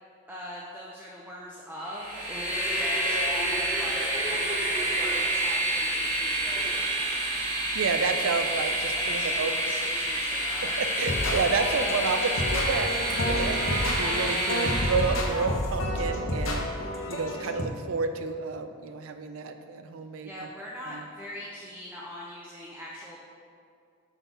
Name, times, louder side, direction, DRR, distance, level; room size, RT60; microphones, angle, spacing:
voice 1, 0.3-7.1 8.9-10.8 20.2-23.2, equal, 10° right, -5 dB, 0.5 m, -41 dB
Train, 1.9-15.4, right 1 dB, 35° right, 1.0 m, -28 dB
voice 2, 7.7-9.5 10.8-16.7 17.1-20.3 20.9-21.0, right 5 dB, 85° right, 8 dB, 0.5 m, -30 dB
sound 1, 11.0-17.6, left 1 dB, 75° left, 0.8 m, -30 dB
6.0 x 4.1 x 5.2 m, 2.4 s
head